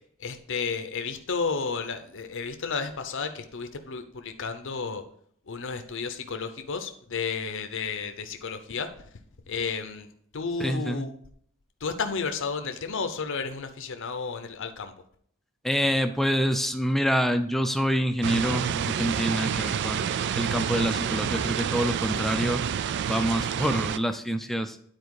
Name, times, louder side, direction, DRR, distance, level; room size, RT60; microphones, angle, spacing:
voice 1, 0.2-5.0 5.5-9.1 9.5-11.2 11.8-14.9, left 5 dB, 65° left, 7 dB, 0.7 m, -32 dB
voice 2, 10.6-11.0 15.6-20.1 20.4-22.6 23.0-24.8, equal, ahead, 8 dB, 0.5 m, -26 dB
sound 1, 18.2-24.0, right 8 dB, 55° right, 0.3 m, -28 dB
9.5 x 4.4 x 4.7 m, 0.64 s
head